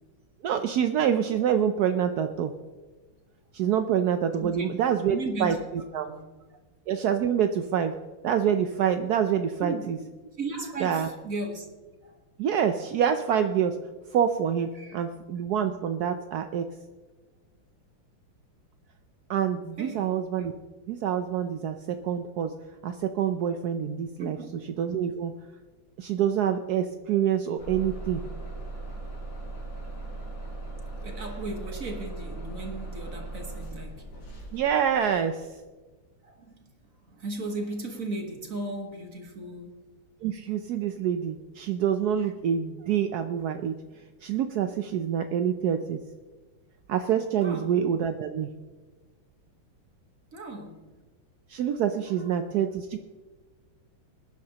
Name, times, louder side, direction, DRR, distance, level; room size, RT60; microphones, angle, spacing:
voice 1, 0.4-2.5 3.5-6.1 6.9-7.9 8.2-10.0 10.8-11.1 12.4-13.8 14.1-16.7 19.3-20.5 20.9-22.5 22.8-24.4 24.8-25.3 26.0-28.2 34.5-35.5 40.2-43.8 44.2-46.0 46.9-48.5 51.5-53.0, right 8 dB, 75° right, 7 dB, 0.9 m, -26 dB
voice 2, 5.1-5.6 6.0-6.2 9.6-9.9 10.4-11.7 12.0-12.1 14.7-15.0 19.8-20.1 24.2-24.5 31.0-34.0 36.2-36.5 37.1-39.7 47.4-47.7 50.3-50.8, right 2 dB, 45° right, 4 dB, 1.6 m, -36 dB
Bus / Engine starting, 27.6-35.3, right 2 dB, 85° left, 5.0 m, -38 dB
20.0 x 10.5 x 2.9 m, 1.3 s
omnidirectional pair, 2.3 m